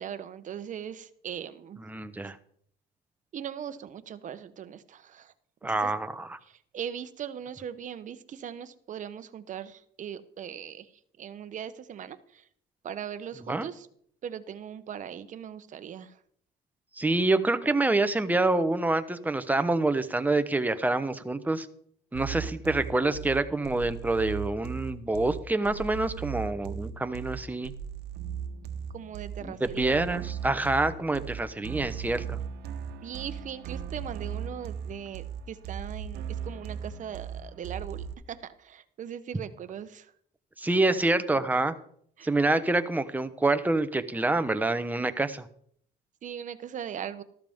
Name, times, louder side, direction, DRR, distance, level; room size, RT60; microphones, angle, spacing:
voice 1, 0.0-1.8 3.3-5.3 5.7-5.9 6.7-10.9 11.2-12.2 12.8-13.9 14.2-16.1 28.9-30.2 33.0-38.4 38.6-40.0 42.2-42.3 46.2-47.2, right 9 dB, 50° right, 12 dB, 0.9 m, -39 dB
voice 2, 1.8-2.4 5.6-6.4 13.4-13.7 17.0-21.7 22.1-27.7 29.4-32.4 40.6-41.7 42.2-45.5, right 2 dB, 10° right, 10 dB, 0.9 m, -27 dB
sound 1, 22.1-38.1, right 8 dB, 75° right, 1.1 m, -37 dB
13.5 x 13.0 x 3.6 m, 0.64 s
cardioid pair, 110°, 17 cm